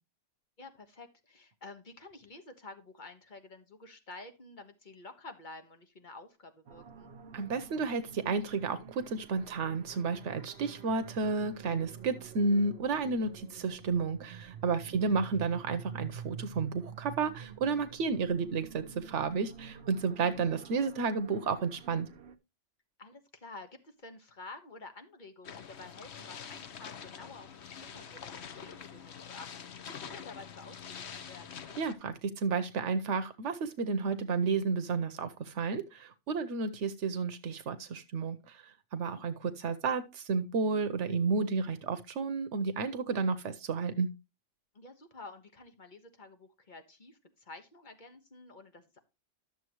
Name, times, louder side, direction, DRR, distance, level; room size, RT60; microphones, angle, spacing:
voice 1, 0.6-7.1 14.8-14.9 23.0-31.6 38.9-39.2 44.7-49.0, left 3 dB, 40° left, 1.5 m, -50 dB
sound 1, 6.7-22.4, right 7 dB, 65° right, 1.1 m, -48 dB
voice 2, 7.3-22.1 31.8-44.1, right 4 dB, 85° right, 1.1 m, -32 dB
sound 2, 25.4-31.9, left 7 dB, 70° left, 1.1 m, -45 dB
12.0 x 7.0 x 3.0 m
omnidirectional pair, 1.2 m